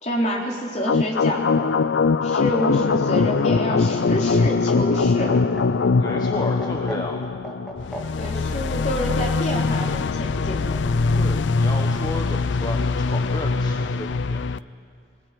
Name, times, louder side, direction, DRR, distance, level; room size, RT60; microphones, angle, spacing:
voice 1, 0.0-1.7 2.2-5.4 8.2-10.8, equal, 40° left, -2 dB, 3.8 m, -28 dB
sound 1, 0.9-14.6, left 4 dB, 90° left, 0.5 m, -22 dB
Laughter, 2.9-8.6 9.9-10.6, right 1 dB, 5° left, 1.9 m, -39 dB
voice 2, 6.0-7.2 11.1-14.5, left 1 dB, 20° left, 1 dB, 1.2 m, -33 dB
22.5 x 20.0 x 9.0 m, 2.5 s
head